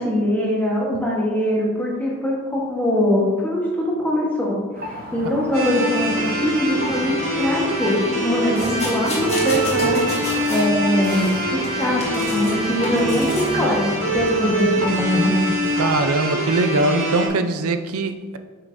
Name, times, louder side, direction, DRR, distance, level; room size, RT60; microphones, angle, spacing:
voice 1, 0.0-10.0 10.5-11.3 11.8-13.9 14.1-15.5, equal, 5° left, -4 dB, 1.2 m, -22 dB
sound 1, 4.7-16.1, equal, 40° right, 0.8 m, -34 dB
sound 2, 5.5-17.3, right 1 dB, 65° right, 2.0 m, -24 dB
sound 3, 8.6-10.7 11.0-12.5 12.8-13.5 14.2-14.3, left 2 dB, 30° left, 1.6 m, -30 dB
voice 2, 15.8-18.4, right 3 dB, 85° right, 8 dB, 0.5 m, -21 dB
8.2 x 5.7 x 2.6 m, 1.4 s
head